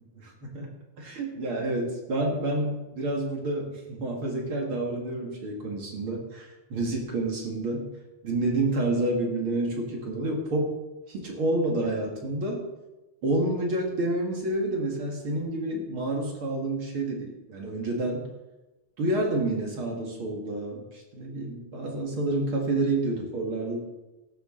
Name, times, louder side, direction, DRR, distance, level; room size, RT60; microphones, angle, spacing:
voice 1, 0.2-0.7 1.0-7.9 8.2-10.8 11.1-12.7 13.2-18.3 19.0-23.8, right 2 dB, 45° right, 0 dB, 2.6 m, -29 dB
14.0 x 12.5 x 3.9 m, 1.0 s
omnidirectional pair, 3.5 m